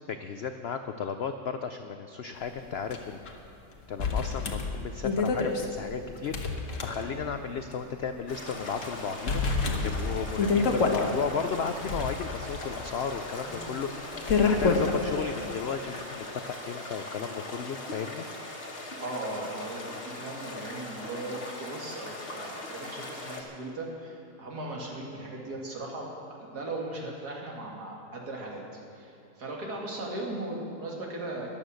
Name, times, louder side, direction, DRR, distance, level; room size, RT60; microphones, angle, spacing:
voice 1, 0.1-3.2 3.9-18.2, left 6 dB, 75° left, 8 dB, 0.5 m, -34 dB
sound 1, 2.9-3.0 3.3-3.4 4.0-7.4 7.7-7.8 8.4-8.9 9.3-11.1 11.7-15.0, left 4 dB, 55° left, 1.5 m, -28 dB
sound 2, 8.3-23.4, left 2 dB, 40° left, 1.7 m, -40 dB
voice 2, 19.0-31.5, right 2 dB, 75° right, -2 dB, 2.7 m, -38 dB
14.0 x 11.0 x 6.4 m, 2.7 s
omnidirectional pair, 1.7 m